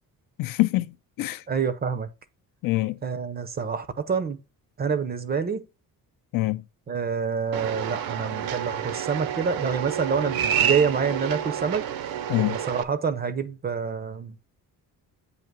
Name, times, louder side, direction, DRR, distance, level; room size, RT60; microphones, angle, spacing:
voice 1, 0.4-1.4 2.6-3.0 6.3-6.6 12.3-12.6, left 18 dB, 65° left, 0.5 m, -25 dB
voice 2, 1.5-2.1 3.0-4.4 4.8-5.7 6.9-11.8 12.5-14.4, right 6 dB, 25° right, 0.5 m, -27 dB
sound 1, 7.5-12.8, right 9 dB, 75° right, 0.7 m, -29 dB
7.9 x 2.8 x 5.9 m
cardioid pair, 175°, 36 cm